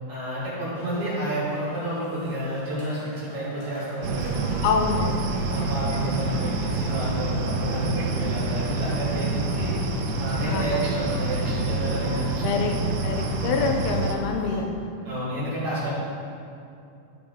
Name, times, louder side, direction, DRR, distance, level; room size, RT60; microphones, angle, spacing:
voice 1, 0.1-4.5 5.5-9.7 10.2-12.8 15.0-16.0, equal, 45° right, -9 dB, 2.6 m, -30 dB
sound 1, 0.7-14.6, left 1 dB, 45° left, 2.8 m, -45 dB
sound 2, 4.0-14.2, right 3 dB, 85° right, 1.8 m, -27 dB
voice 2, 4.6-5.3 10.5-10.8 12.4-12.8 13.0-14.9, left 5 dB, 85° left, 4 dB, 2.5 m, -26 dB
12.0 x 5.0 x 3.7 m, 2.6 s
omnidirectional pair, 4.4 m